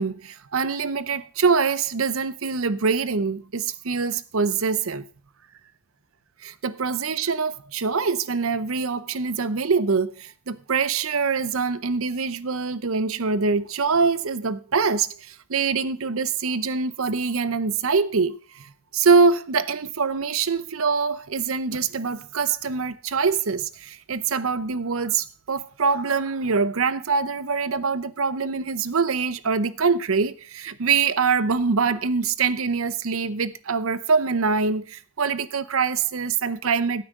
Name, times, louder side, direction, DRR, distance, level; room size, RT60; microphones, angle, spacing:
voice 1, 0.0-5.1 6.4-37.0, right 5 dB, 70° right, 0.7 m, -24 dB
15.0 x 8.6 x 3.7 m
head